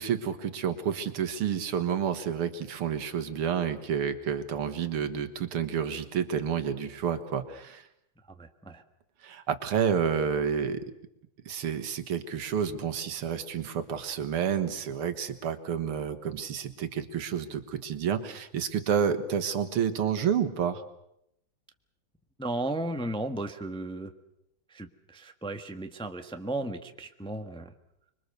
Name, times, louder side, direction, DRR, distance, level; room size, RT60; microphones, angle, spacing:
voice 1, 0.0-7.9 9.2-10.8 11.5-20.8, right 8 dB, 80° right, 10 dB, 2.4 m, -29 dB
voice 2, 8.4-8.8 22.4-24.1 24.7-27.7, right 1 dB, 5° left, 6 dB, 0.9 m, -35 dB
25.5 x 23.5 x 6.8 m, 0.80 s
omnidirectional pair, 2.4 m